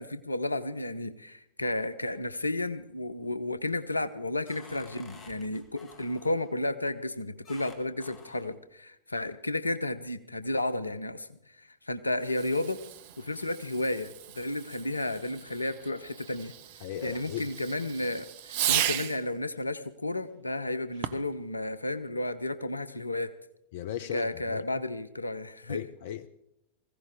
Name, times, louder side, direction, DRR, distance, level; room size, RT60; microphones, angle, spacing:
voice 1, 0.0-12.8 13.2-16.5 17.0-23.3 24.1-25.8, left 1 dB, 80° left, 0.8 m, -32 dB
sound 1, 2.1-2.7 3.1-3.5 4.0-6.6 7.4-8.6, left 4 dB, 25° left, 2.1 m, -52 dB
Fireworks, 12.2-19.3 20.9-21.4, right 12 dB, 50° right, 0.8 m, -36 dB
voice 2, 16.8-17.5 23.7-24.6 25.7-26.3, left 10 dB, 55° left, 0.6 m, -37 dB
20.0 x 16.0 x 3.6 m
figure-of-eight pair, 90°, 0 cm